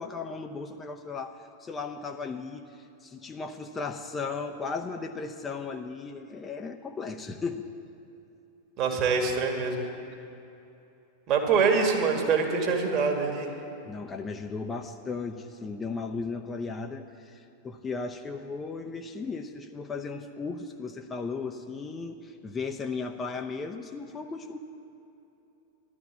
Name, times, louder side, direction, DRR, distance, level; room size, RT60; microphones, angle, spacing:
voice 1, 0.0-7.6 13.8-24.6, left 4 dB, 20° left, 4 dB, 0.7 m, -36 dB
voice 2, 8.8-9.8 11.3-13.5, right 5 dB, 40° right, 2 dB, 2.0 m, -25 dB
12.5 x 12.0 x 7.5 m, 2.9 s
figure-of-eight pair, 90°, 0 cm